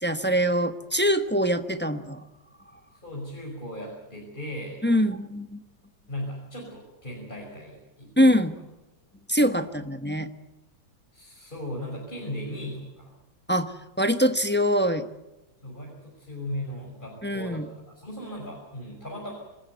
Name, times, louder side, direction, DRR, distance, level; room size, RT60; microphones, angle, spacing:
voice 1, 0.0-2.2 4.8-5.6 8.2-8.5 9.3-10.3 13.5-15.1 17.2-17.7, equal, 10° left, 9 dB, 0.8 m, -23 dB
voice 2, 2.9-4.8 6.1-8.3 11.1-13.1 15.6-19.3, equal, 25° left, -3 dB, 5.8 m, -37 dB
26.5 x 14.0 x 9.3 m, 1.0 s
omnidirectional pair, 2.0 m